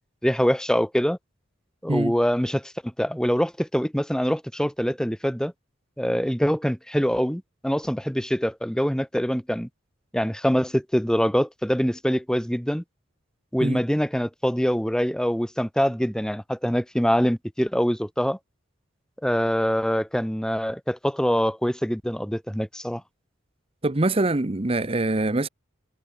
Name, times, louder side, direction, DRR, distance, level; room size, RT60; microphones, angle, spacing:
voice 1, 0.2-1.2 1.8-5.5 6.0-9.7 10.1-12.8 13.5-18.4 19.2-23.0, equal, 5° left, 1.4 m, -24 dB
voice 2, 23.8-25.5, right 2 dB, 30° right, 0.9 m, -24 dB
head